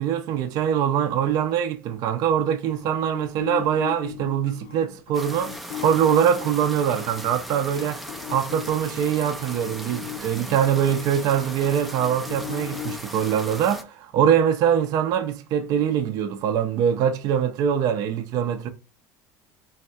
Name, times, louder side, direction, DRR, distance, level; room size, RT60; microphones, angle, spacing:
voice 1, 0.0-8.0 8.3-18.7, right 8 dB, 50° right, 0.5 m, -23 dB
sound 1, 2.6-7.4 8.1-13.0, left 13 dB, 70° left, 0.6 m, -37 dB
sound 2, 5.1-13.8, equal, ahead, 0.4 m, -38 dB
3.9 x 2.2 x 2.6 m
supercardioid pair, 130°, 8 cm